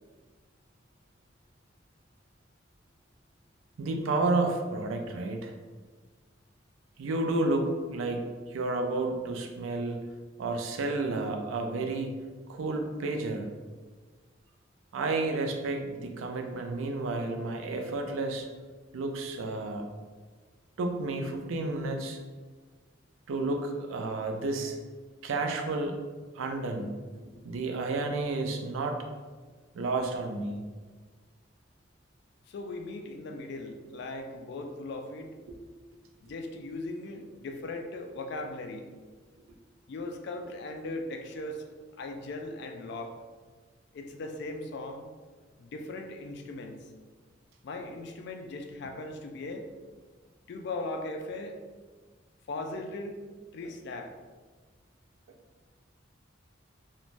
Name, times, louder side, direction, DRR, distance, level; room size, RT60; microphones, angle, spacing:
voice 1, 3.8-5.5 7.0-8.2 8.5-10.0 10.4-12.1 12.5-13.5 14.9-18.5 18.9-19.8 20.8-22.2 23.3-24.8 25.2-26.0 26.4-29.0 29.7-30.6 35.5-35.6, right 2 dB, 85° right, 4 dB, 0.4 m, -31 dB
voice 2, 32.5-35.3 36.2-38.9 39.9-41.7 42.0-43.2 43.9-45.1 45.6-46.9 47.6-49.7 50.5-51.6 52.5-53.2 53.5-54.1, left 2 dB, 60° left, 5 dB, 0.3 m, -38 dB
3.0 x 2.2 x 2.5 m, 1.4 s
head